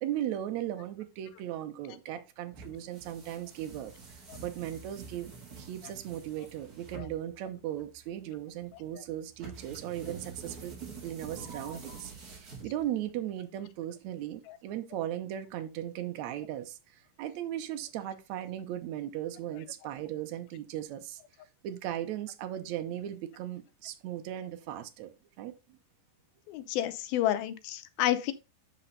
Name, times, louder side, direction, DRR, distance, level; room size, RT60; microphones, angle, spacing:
voice 1, 0.0-3.9 4.4-16.8 17.2-21.2 21.6-25.1 25.4-25.6, right 12 dB, 85° right, 1.6 m, -37 dB
sound 1, 2.5-13.1, right 4 dB, 30° right, 1.9 m, -47 dB
voice 2, 26.5-28.3, left 13 dB, 80° left, 2.6 m, -29 dB
8.4 x 5.6 x 4.0 m
omnidirectional pair, 4.3 m